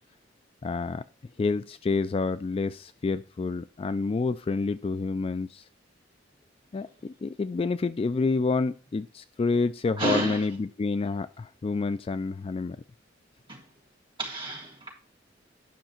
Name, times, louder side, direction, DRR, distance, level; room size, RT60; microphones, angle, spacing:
voice 1, 0.6-1.0 1.4-5.6 6.7-12.8, left 4 dB, 30° left, 0.3 m, -28 dB
voice 2, 10.0-10.4 13.5-13.6 14.2-14.9, right 2 dB, 25° right, 3.3 m, -30 dB
10.5 x 5.8 x 4.3 m
head